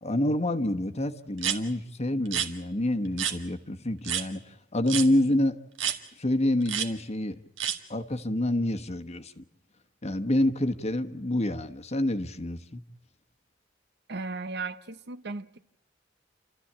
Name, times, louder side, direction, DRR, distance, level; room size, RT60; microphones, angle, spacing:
voice 1, 0.0-5.5 6.2-7.4 7.9-9.4 10.0-12.8, left 1 dB, 35° left, 1.3 m, -27 dB
sound 1, 1.4-1.6 2.2-2.5 3.2-3.4 4.0-4.2 4.9-5.1 5.8-6.0 6.6-6.9 7.6-7.8, right 9 dB, 85° right, 2.0 m, -28 dB
voice 2, 14.1-15.6, right 3 dB, 60° right, 1.0 m, -36 dB
29.5 x 14.0 x 8.7 m
head